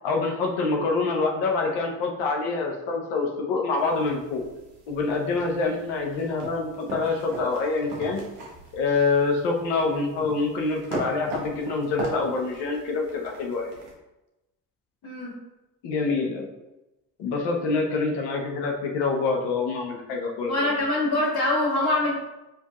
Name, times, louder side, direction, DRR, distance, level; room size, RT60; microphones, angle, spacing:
voice 1, 0.0-4.4 4.9-8.2 8.7-13.7 15.8-16.5 17.2-20.7, left 3 dB, 85° left, 0 dB, 0.9 m, -26 dB
sound 1, 3.8-13.9, right 2 dB, 80° right, 1.2 m, -40 dB
voice 2, 15.0-15.3 20.5-22.1, left 2 dB, 55° left, -6 dB, 1.4 m, -24 dB
6.5 x 2.7 x 2.4 m, 0.99 s
supercardioid pair, 65°, 41 cm